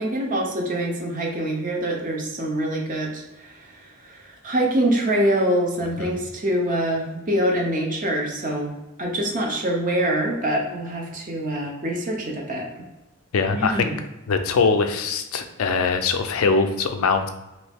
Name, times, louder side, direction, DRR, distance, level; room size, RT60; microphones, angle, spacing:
voice 1, 0.0-3.5 4.0-8.7 9.0-12.7 13.5-14.0, right 1 dB, 40° right, 0 dB, 0.6 m, -25 dB
voice 2, 13.3-13.9 14.3-17.3, left 4 dB, 80° left, 7 dB, 0.4 m, -22 dB
3.0 x 2.7 x 3.4 m, 1.0 s
head